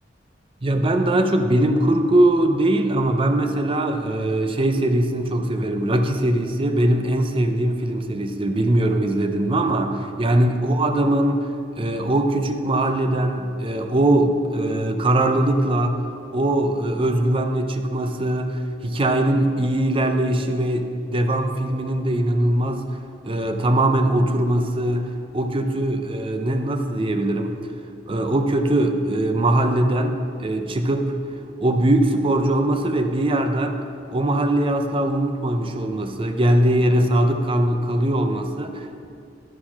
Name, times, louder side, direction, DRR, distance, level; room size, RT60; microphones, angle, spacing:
voice 1, 0.6-9.9 10.2-11.5 11.8-16.0 16.3-22.8 23.2-27.6 28.1-31.1 31.6-33.8 34.1-39.1, right 1 dB, 30° right, 6 dB, 0.5 m, -21 dB
11.5 x 4.3 x 5.8 m, 2.4 s
head